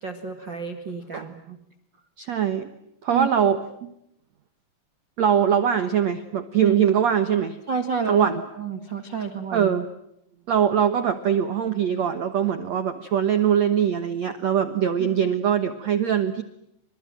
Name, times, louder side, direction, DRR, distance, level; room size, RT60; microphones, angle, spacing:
voice 1, 0.0-1.6 3.1-3.3 6.6-6.8 7.7-9.7 15.0-15.3, right 6 dB, 45° right, 8 dB, 1.6 m, -30 dB
voice 2, 2.2-2.7 3.0-3.9 5.2-7.6 8.1-8.4 9.5-9.9 10.5-16.4, right 8 dB, 85° right, 10 dB, 1.5 m, -22 dB
29.5 x 26.5 x 7.6 m, 0.80 s
omnidirectional pair, 5.2 m